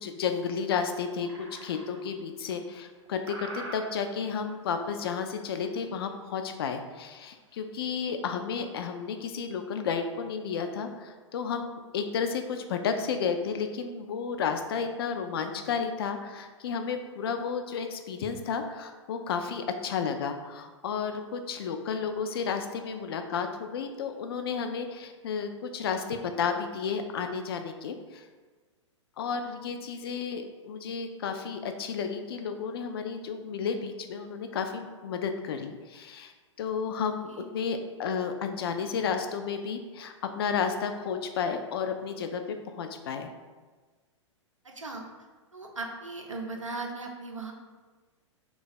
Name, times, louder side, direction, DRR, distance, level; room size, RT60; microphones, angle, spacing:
voice 1, 0.0-28.3 29.2-36.3 36.6-42.4 42.7-43.3, left 6 dB, 50° left, 6 dB, 0.4 m, -32 dB
sound 1, 0.6-0.7 1.2-2.1 2.5-3.0 3.3-4.2 4.6-4.9 5.4-6.0 6.3-6.4 6.7-6.8 7.3-7.6, right 2 dB, 35° right, 0.9 m, -44 dB
voice 2, 44.6-45.0 45.5-47.5, right 3 dB, 85° right, 1 dB, 0.6 m, -38 dB
3.3 x 2.4 x 3.9 m, 1.3 s
figure-of-eight pair, 105°, 16 cm